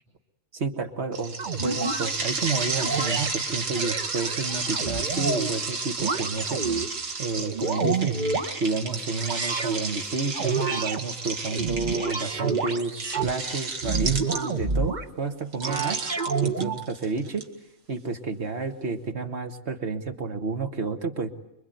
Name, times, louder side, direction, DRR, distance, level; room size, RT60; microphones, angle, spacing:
voice 1, 0.5-1.4 1.6-6.6 7.2-8.2 8.6-16.0 16.4-17.5 17.9-21.3, right 4 dB, 60° right, 6 dB, 1.8 m, -30 dB
sound 1, 1.1-14.8 15.5-17.4, right 4 dB, 85° right, 2.5 m, -32 dB
sound 2, 1.4-2.1 2.8-3.3 3.7-5.6 6.0-6.9 7.4-8.5 9.2-9.8 10.3-11.0 11.5-13.3 13.8-15.1 15.6-16.8, right 4 dB, 40° right, 1.2 m, -28 dB
25.5 x 23.0 x 9.3 m, 0.87 s
omnidirectional pair, 1.3 m